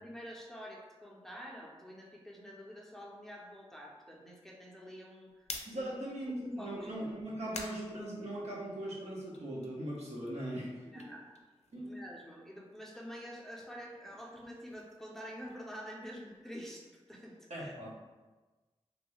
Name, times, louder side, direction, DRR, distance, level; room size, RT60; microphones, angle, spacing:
voice 1, 0.0-5.9 6.6-6.9 10.8-11.3 11.8-17.7, equal, 5° left, -3 dB, 0.6 m, -47 dB
sound 1, 5.3-8.8 9.2-12.1 12.4-16.6, left 3 dB, 80° left, 0.4 m, -51 dB
voice 2, 5.7-11.0 11.7-12.0 17.5-17.9, right 1 dB, 80° right, -6 dB, 1.0 m, -40 dB
3.0 x 2.7 x 3.1 m, 1.2 s
wide cardioid pair, 70°, 11 cm